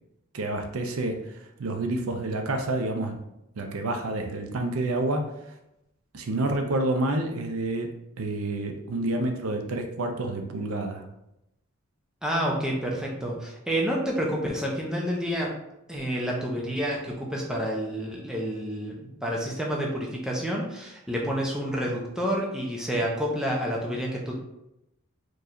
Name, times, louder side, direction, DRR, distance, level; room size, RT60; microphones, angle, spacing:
voice 1, 0.3-3.2 3.6-5.3 6.1-11.0, right 2 dB, 80° right, 4 dB, 0.6 m, -29 dB
voice 2, 12.2-15.5 15.9-24.3, equal, 5° right, -3 dB, 0.6 m, -29 dB
4.5 x 3.1 x 2.5 m, 0.86 s
head